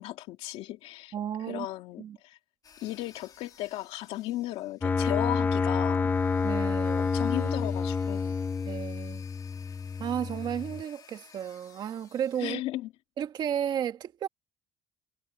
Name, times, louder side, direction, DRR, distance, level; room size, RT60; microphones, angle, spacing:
voice 1, 0.0-1.1 1.4-2.4 2.8-6.1 7.0-8.3 12.4-12.9, left 15 dB, 70° left, 2.3 m, -36 dB
voice 2, 1.1-1.7 2.0-2.2 6.4-7.1 8.6-9.2 10.0-12.6 13.2-14.3, right 9 dB, 45° right, 1.8 m, -33 dB
sound 1, 2.6-5.0 5.9-12.5, left 7 dB, 35° left, 2.4 m, -56 dB
sound 2, 4.8-10.8, left 5 dB, 20° left, 0.7 m, -28 dB
cardioid pair, 150°, 11 cm